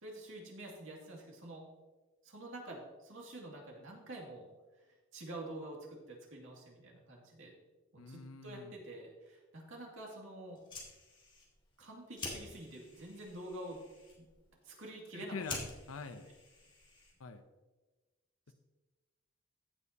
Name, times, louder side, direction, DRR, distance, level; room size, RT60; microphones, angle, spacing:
voice 1, 0.0-1.7 2.2-4.5 5.1-7.5 7.9-10.6 11.8-13.8 14.2-14.3 14.6-15.4, right 1 dB, 70° right, -2 dB, 2.4 m, -47 dB
voice 2, 8.0-8.7 15.1-16.3 17.2-17.4, left 4 dB, 90° left, 9 dB, 0.7 m, -45 dB
Fire, 10.5-17.4, left 3 dB, 25° left, 2.0 m, -49 dB
14.5 x 7.2 x 2.8 m, 1.2 s
head